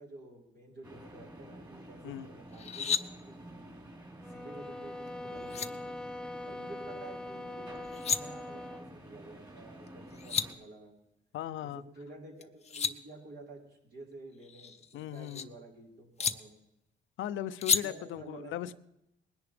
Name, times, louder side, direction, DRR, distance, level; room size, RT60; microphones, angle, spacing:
voice 1, 0.0-3.7 4.3-6.0 6.5-11.0 11.6-16.5 17.8-18.8, right 2 dB, 60° right, 5.2 m, -50 dB
sound 1, 0.8-10.5, right 1 dB, 20° right, 4.3 m, -50 dB
sound 2, 2.5-3.0 5.1-5.2 5.5-5.7 7.8-8.2 9.9-10.0 10.1-10.5 12.4-12.9 14.4-15.4 16.2-16.3 17.6-17.8, left 6 dB, 35° left, 0.8 m, -31 dB
sound 3, 4.2-8.9, left 1 dB, 5° left, 0.4 m, -42 dB
voice 2, 11.3-11.8 14.9-15.5 17.2-18.7, left 11 dB, 80° left, 0.7 m, -38 dB
20.5 x 10.5 x 3.4 m
cardioid pair, 90°, 20 cm